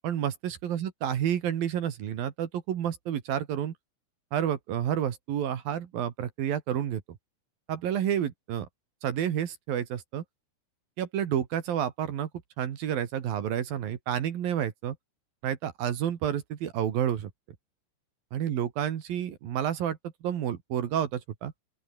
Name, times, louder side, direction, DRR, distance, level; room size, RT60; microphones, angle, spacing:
voice 1, 0.0-3.7 4.3-7.2 7.7-8.7 9.0-10.2 11.0-12.3 12.6-15.0 15.4-17.3 18.3-21.5, right 10 dB, 55° right, 3.1 m, -30 dB
open air
omnidirectional pair, 5.7 m